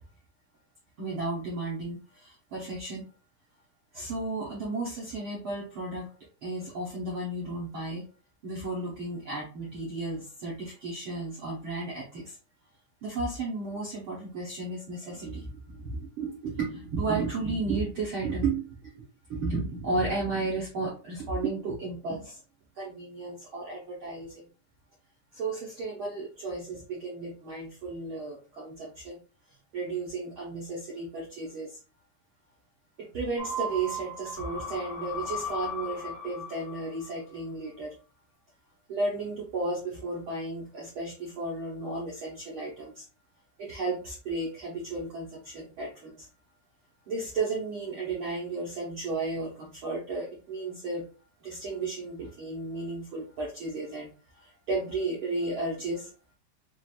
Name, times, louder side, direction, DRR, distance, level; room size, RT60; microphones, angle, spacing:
voice 1, 1.0-3.1 3.9-6.1 6.4-8.1 8.4-12.4 13.0-22.4 22.7-24.4 25.3-29.2 29.7-31.8 33.0-37.9 38.9-43.0 43.6-46.3 47.1-51.1 51.4-56.1, right 3 dB, 75° right, -5 dB, 1.2 m, -33 dB
sound 1, 33.4-37.1 37.4-37.5, left 1 dB, 40° left, 1.0 m, -36 dB
5.9 x 2.5 x 2.4 m, 0.35 s
omnidirectional pair, 4.0 m